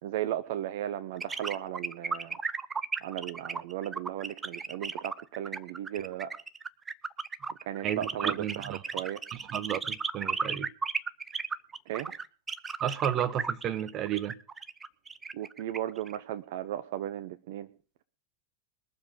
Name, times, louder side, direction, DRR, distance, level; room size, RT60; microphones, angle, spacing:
voice 1, 0.0-2.4 3.0-6.3 7.6-9.2 11.9-12.1 15.3-17.7, right 12 dB, 50° right, 10 dB, 0.7 m, -36 dB
sound 1, 1.2-16.2, right 5 dB, 15° right, 0.6 m, -34 dB
voice 2, 7.8-8.8 9.3-10.7 12.8-14.4, right 10 dB, 30° right, 15 dB, 1.0 m, -32 dB
21.5 x 7.3 x 5.2 m, 0.38 s
figure-of-eight pair, 90°, 0 cm